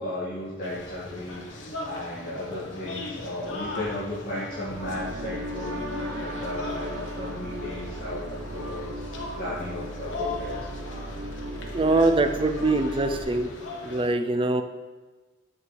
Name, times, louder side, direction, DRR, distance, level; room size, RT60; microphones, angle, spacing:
voice 1, 0.0-10.6, left 1 dB, 50° left, -10 dB, 2.1 m, -35 dB
sound 1, 0.6-14.1, left 2 dB, 75° left, 1.1 m, -39 dB
sound 2, 4.7-13.2, right 1 dB, 85° right, 0.9 m, -36 dB
voice 2, 11.7-13.5 13.8-14.6, right 2 dB, 25° right, 6 dB, 0.4 m, -23 dB
7.7 x 7.4 x 3.3 m, 1.3 s
head